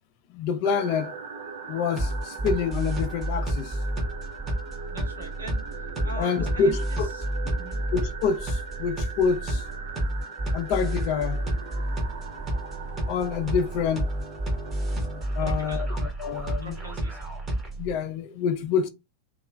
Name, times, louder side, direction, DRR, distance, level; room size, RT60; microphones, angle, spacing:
voice 1, 0.3-1.1 1.7-3.8 6.2-7.1 7.9-9.6 10.5-11.5 13.1-14.1 15.4-15.9 16.2-16.8 17.8-18.9, left 6 dB, 45° left, 0.4 m, -27 dB
sound 1, 0.6-16.0, right 5 dB, 60° right, 0.4 m, -41 dB
sound 2, 2.0-17.9, right 1 dB, 25° right, 0.8 m, -30 dB
voice 2, 4.9-7.2 7.5-7.8 15.4-15.9 16.6-17.4, right 1 dB, 75° right, 0.9 m, -42 dB
2.8 x 2.3 x 2.2 m
figure-of-eight pair, 90°, 0 cm